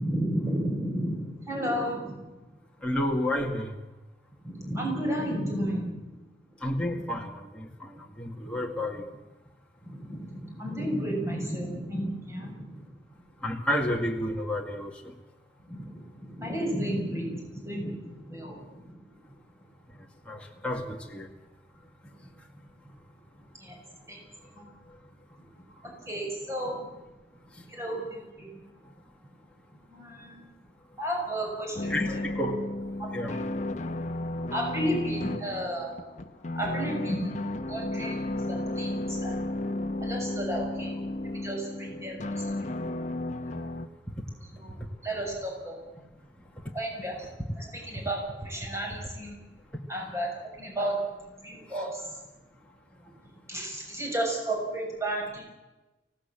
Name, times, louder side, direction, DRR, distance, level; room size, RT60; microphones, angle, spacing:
voice 1, 0.0-2.3 4.4-6.1 9.8-12.8 15.6-19.0 22.0-22.3 23.6-23.8 24.1-24.2 24.5-24.7 25.4-25.5 25.8-26.9 27.7-28.5 29.9-30.4 31.0-32.1 33.0-33.4 34.5-35.9 36.5-37.4 37.6-39.5 40.0-40.9 41.2-42.7 43.4-43.7 44.5-45.8 46.7-47.3 47.6-49.4 49.9-50.3 50.6-51.0 51.4-52.1 53.5-55.4, right 1 dB, 15° right, 0 dB, 6.7 m, -33 dB
voice 2, 2.8-3.7 6.6-9.1 13.4-15.2 19.9-20.0 20.3-21.3 22.4-22.5 24.9-25.0 27.5-27.7 31.9-32.7 33.1-33.4 41.4-41.5 44.8-44.9 46.6-46.7 49.7-49.8 51.7-51.8, left 1 dB, 5° left, -1 dB, 2.1 m, -31 dB
sound 1, 31.8-43.9, left 1 dB, 40° left, 1.1 m, -33 dB
25.0 x 17.5 x 7.5 m, 1.1 s
head